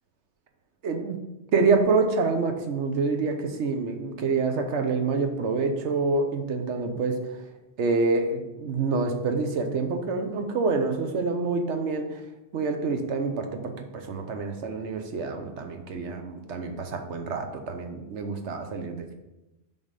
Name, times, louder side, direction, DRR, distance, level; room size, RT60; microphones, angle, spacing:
voice 1, 0.8-1.2 1.5-7.4 7.8-12.2 12.5-19.1, right 4 dB, 90° right, 5 dB, 1.2 m, -27 dB
7.1 x 4.2 x 5.2 m, 0.99 s
omnidirectional pair, 1.2 m